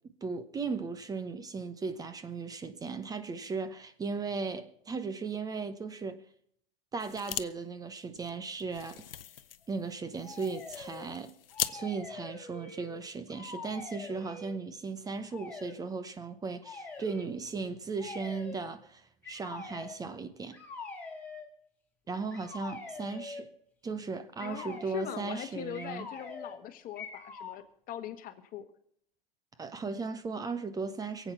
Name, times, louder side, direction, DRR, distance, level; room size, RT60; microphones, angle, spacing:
voice 1, 0.2-6.2 6.9-9.2 9.7-11.3 11.7-20.6 22.1-23.5 23.8-26.0 29.6-31.3, right 4 dB, 15° right, 0.9 m, -37 dB
sound 1, 7.0-7.5 7.8-7.9 8.2-11.8, left 10 dB, 75° left, 0.7 m, -39 dB
sound 2, 10.2-11.1 11.5-13.0 13.3-14.6 15.3-15.8 16.6-17.3 18.0-18.7 19.2-20.0 20.5-21.5 22.3-23.5 24.4-24.9 25.7-26.6 27.0-27.6, left 3 dB, 5° left, 3.9 m, -44 dB
voice 2, 24.4-28.6, left 10 dB, 30° left, 1.5 m, -41 dB
22.5 x 8.2 x 5.7 m
hypercardioid pair, 110°, 29 cm